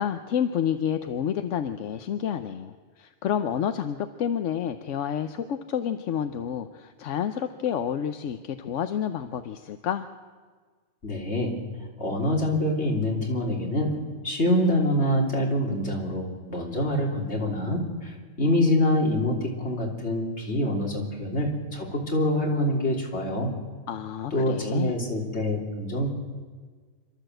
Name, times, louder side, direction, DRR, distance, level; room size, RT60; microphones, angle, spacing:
voice 1, 0.0-10.1 23.9-25.0, left 9 dB, 85° left, 9 dB, 1.1 m, -29 dB
voice 2, 11.0-11.6 12.0-14.0 14.2-23.5 24.3-26.1, left 1 dB, 65° left, -1 dB, 3.5 m, -25 dB
27.0 x 13.0 x 7.8 m, 1.5 s
omnidirectional pair, 1.2 m